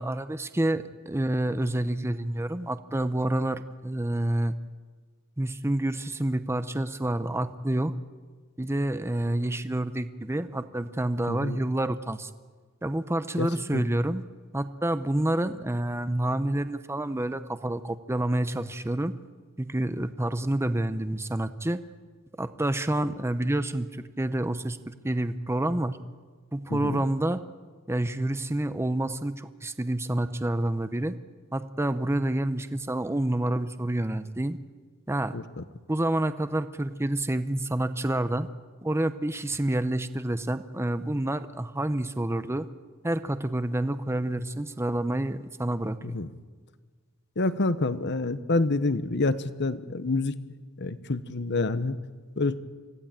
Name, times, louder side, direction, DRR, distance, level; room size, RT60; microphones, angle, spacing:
voice 1, 0.0-4.5 5.4-7.9 8.6-12.3 12.8-14.2 14.5-19.1 19.6-21.8 22.4-26.0 26.5-27.4 27.9-31.1 31.5-34.6 35.1-35.3 35.9-38.5 38.8-42.7 43.0-46.0, right 1 dB, 10° right, 11 dB, 0.7 m, -28 dB
voice 2, 11.3-11.6 13.4-13.5 13.7-13.8 26.7-27.0 35.3-35.6 46.0-46.3 47.4-50.4 50.8-52.0 52.4-52.6, left 3 dB, 55° left, 13 dB, 1.0 m, -27 dB
25.0 x 16.5 x 8.9 m, 1.5 s
head